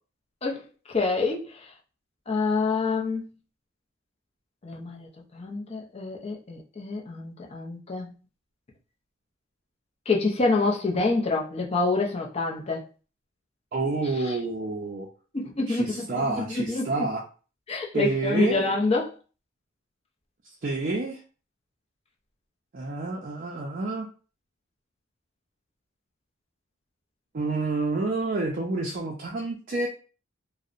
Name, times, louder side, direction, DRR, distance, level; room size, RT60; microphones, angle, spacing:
voice 1, 0.4-1.7 2.3-3.2 4.6-8.1 10.1-12.8 14.2-14.4 15.3-17.1 17.7-19.1, left 3 dB, 30° left, 0.5 m, -27 dB
voice 2, 13.7-15.1 15.7-17.2 17.9-18.6 20.6-21.2 22.7-24.1 27.3-29.9, right 3 dB, 45° right, 0.4 m, -28 dB
2.6 x 2.0 x 2.4 m
head